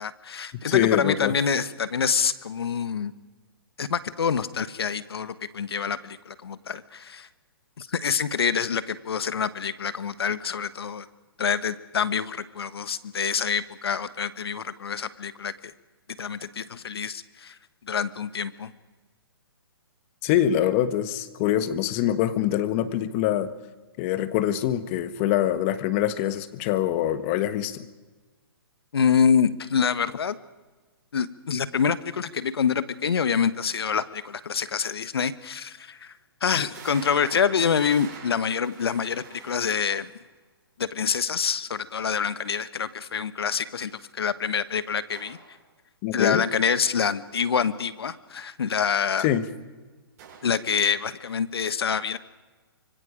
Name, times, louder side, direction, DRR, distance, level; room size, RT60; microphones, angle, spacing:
voice 1, 0.0-3.1 3.8-7.3 7.8-11.1 11.4-15.7 16.2-17.6 17.9-18.7 28.9-30.4 31.1-36.1 36.4-40.1 40.8-43.9 44.2-45.4 46.1-49.3 50.4-52.2, left 6 dB, 75° left, 14 dB, 1.3 m, -26 dB
voice 2, 0.6-1.3 20.2-23.5 24.0-27.9 46.0-46.4 49.2-49.5, left 11 dB, 30° left, 12 dB, 1.3 m, -24 dB
sound 1, 35.1-35.2 35.8-35.9 36.7-40.2 45.1-45.5 50.2-50.7, right 6 dB, 40° right, 6.8 m, -45 dB
25.5 x 24.0 x 5.1 m, 1.3 s
hypercardioid pair, 140°, 13 cm